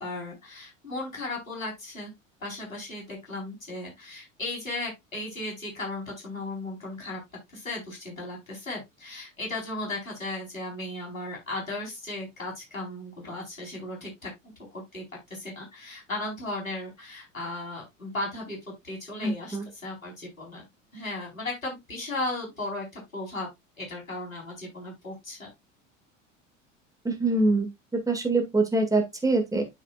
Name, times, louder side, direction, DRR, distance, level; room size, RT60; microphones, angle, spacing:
voice 1, 0.0-2.1 2.4-7.2 7.5-14.3 14.7-15.0 15.3-20.6 20.9-23.5 23.8-25.5, left 2 dB, 80° left, 4.1 m, -36 dB
voice 2, 19.2-19.6 27.1-27.7 28.1-29.6, right 2 dB, 10° right, 1.9 m, -24 dB
12.0 x 4.8 x 2.3 m
figure-of-eight pair, 75°, 39 cm